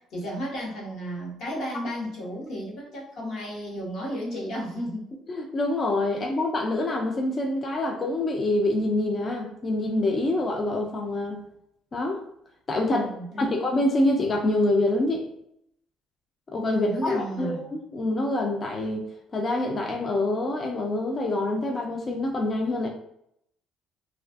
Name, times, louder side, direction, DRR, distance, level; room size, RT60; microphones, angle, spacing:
voice 1, 0.0-5.1 12.8-13.6 16.7-17.6, equal, 65° left, -3 dB, 1.0 m, -33 dB
voice 2, 5.3-11.4 11.9-12.2 12.7-13.1 13.4-15.3 16.5-19.1 19.3-22.9, left 2 dB, 30° left, 1 dB, 0.3 m, -26 dB
2.5 x 2.3 x 2.3 m, 0.75 s
cardioid pair, 135°, 0 cm